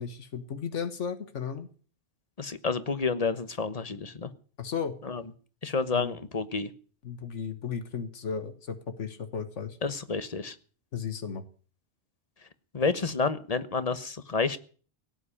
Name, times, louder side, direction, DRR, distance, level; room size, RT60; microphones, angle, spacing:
voice 1, 0.0-1.7 4.6-4.9 5.9-6.1 7.0-9.8 10.9-11.4, left 6 dB, 85° left, 10 dB, 1.7 m, -34 dB
voice 2, 2.4-4.3 5.0-5.2 5.6-6.7 9.8-10.6 12.7-14.6, left 4 dB, 35° left, 13 dB, 1.2 m, -29 dB
17.5 x 7.9 x 9.9 m, 0.43 s
omnidirectional pair, 1.2 m